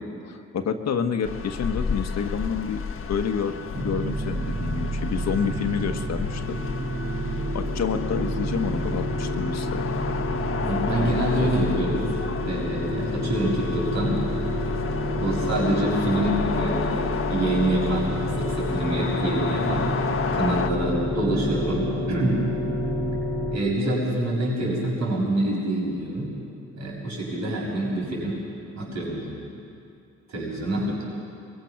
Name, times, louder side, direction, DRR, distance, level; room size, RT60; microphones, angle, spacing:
voice 1, 0.2-2.8 3.1-6.6 7.5-9.9 11.0-11.1 11.4-11.5, left 6 dB, 60° left, 6 dB, 1.4 m, -28 dB
sound 1, 1.2-20.7, left 6 dB, 45° left, 1.3 m, -33 dB
sound 2, 3.7-23.6, equal, 35° right, 2.7 m, -28 dB
voice 2, 10.6-12.0 12.4-14.2 15.2-18.1 18.4-19.9 20.3-22.5 23.5-26.3 26.7-28.4 28.7-29.4 30.3-31.0, right 1 dB, 65° right, -4 dB, 6.7 m, -26 dB
23.0 x 21.5 x 6.0 m, 2.6 s
cardioid pair, 90°, 30 cm